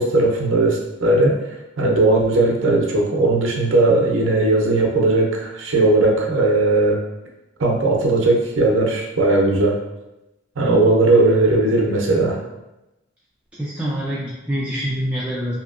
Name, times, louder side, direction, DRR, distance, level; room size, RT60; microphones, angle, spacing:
voice 1, 0.0-1.3 1.8-7.0 7.6-9.8 10.6-12.4, right 2 dB, 65° right, 0 dB, 0.6 m, -17 dB
voice 2, 13.6-15.5, equal, 5° right, -8 dB, 0.4 m, -25 dB
2.7 x 2.7 x 2.4 m, 0.97 s
head